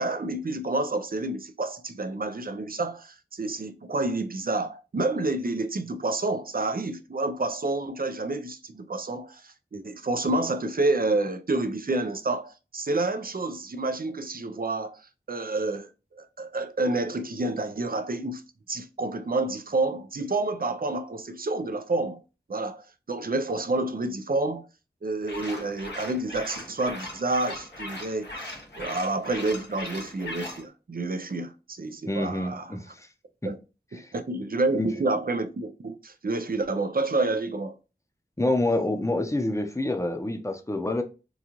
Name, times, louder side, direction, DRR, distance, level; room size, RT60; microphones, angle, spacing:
voice 1, 0.0-15.9 16.1-18.4 18.7-22.2 22.5-24.7 25.0-32.8 33.4-33.6 33.9-37.7, right 2 dB, 55° right, 0.5 m, -29 dB
sound 1, 25.2-30.6, left 1 dB, 90° left, 1.1 m, -39 dB
voice 2, 32.1-33.1 33.4-33.5 33.9-34.1 34.7-34.9 38.4-41.0, left 1 dB, 15° left, 0.7 m, -27 dB
3.9 x 2.3 x 3.0 m
wide cardioid pair, 45°, 18 cm